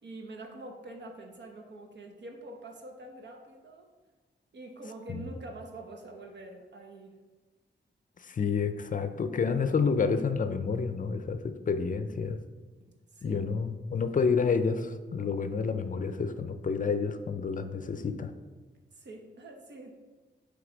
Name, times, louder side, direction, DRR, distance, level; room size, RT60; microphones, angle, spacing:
voice 1, 0.0-3.9 4.5-7.2 13.1-13.4 18.9-19.9, right 2 dB, 70° right, 3 dB, 1.0 m, -45 dB
voice 2, 8.2-12.4 13.2-18.3, left 5 dB, 45° left, 9 dB, 0.5 m, -29 dB
7.6 x 3.4 x 5.1 m, 1.3 s
wide cardioid pair, 100°, 19 cm